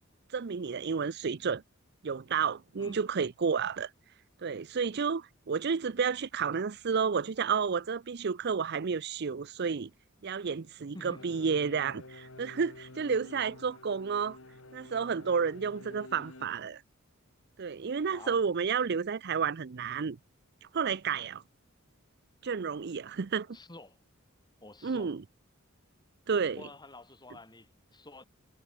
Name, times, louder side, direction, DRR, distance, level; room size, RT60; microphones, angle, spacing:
voice 1, 0.3-1.6 2.0-3.9 4.4-9.9 10.2-14.4 14.7-16.8 17.6-20.2 20.7-21.4 22.4-23.5 24.8-25.2 26.3-26.6, right 6 dB, 50° right, 0.5 m, -31 dB
voice 2, 10.9-11.3 18.1-18.4 23.5-24.0 24.6-25.2 26.6-28.2, left 2 dB, 20° left, 4.4 m, -49 dB
sound 1, 11.1-16.5, left 2 dB, 70° left, 2.8 m, -50 dB
head